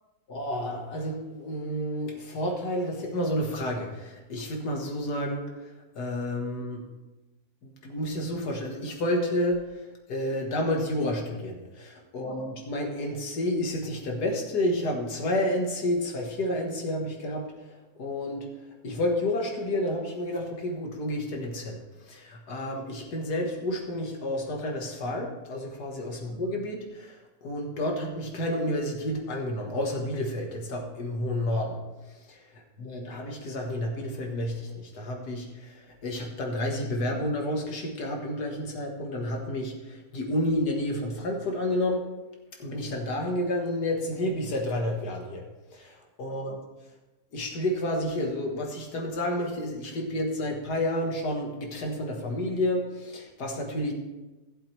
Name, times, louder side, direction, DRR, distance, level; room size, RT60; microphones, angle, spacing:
voice 1, 0.3-6.8 7.6-31.8 32.1-32.2 32.8-42.1 42.6-46.6 47.3-53.9, left 1 dB, 90° left, 1 dB, 2.2 m, -30 dB
15.0 x 7.7 x 3.4 m, 1.1 s
omnidirectional pair, 1.7 m